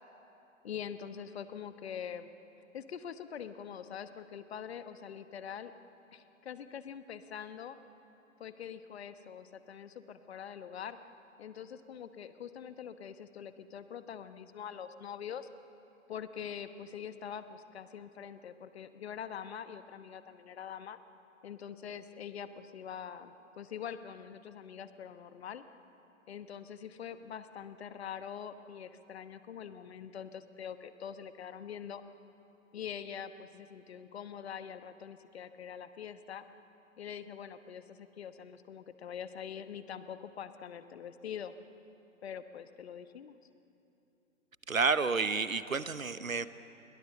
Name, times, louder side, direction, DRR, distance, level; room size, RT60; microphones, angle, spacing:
voice 1, 0.6-2.3 2.7-5.7 6.1-7.8 8.4-11.0 11.4-15.5 16.1-21.0 21.4-25.6 26.3-32.0 32.7-36.4 37.0-41.5 42.2-43.4, left 8 dB, 50° left, 11 dB, 1.3 m, -44 dB
voice 2, 44.7-46.5, right 4 dB, 85° right, 14 dB, 1.0 m, -30 dB
29.5 x 22.5 x 6.9 m, 2.9 s
figure-of-eight pair, 115°, 40 cm